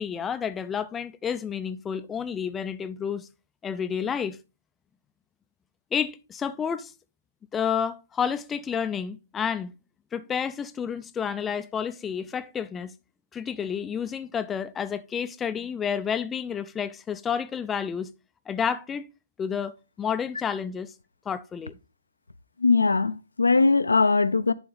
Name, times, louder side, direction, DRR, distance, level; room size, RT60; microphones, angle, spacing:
voice 1, 0.0-3.3 3.6-4.4 5.9-6.9 7.5-9.7 10.1-12.9 13.3-18.1 18.5-19.1 19.4-20.9 21.3-21.7, left 7 dB, 15° left, 0.4 m, -30 dB
voice 2, 22.6-24.5, left 4 dB, 75° left, 0.5 m, -20 dB
10.0 x 3.8 x 4.0 m
figure-of-eight pair, 130°, 0 cm